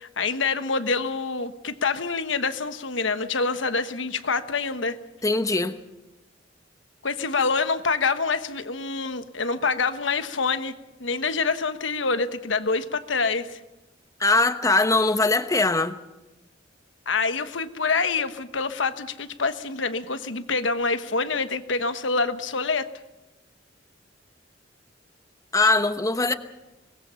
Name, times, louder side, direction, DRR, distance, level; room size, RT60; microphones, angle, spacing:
voice 1, 0.0-5.0 7.0-10.7 11.0-13.6 17.1-22.9, left 4 dB, 90° left, 1.3 m, -26 dB
voice 2, 5.2-5.7 14.2-15.9 25.5-26.3, left 2 dB, 20° left, 1.0 m, -21 dB
24.0 x 20.5 x 5.7 m
head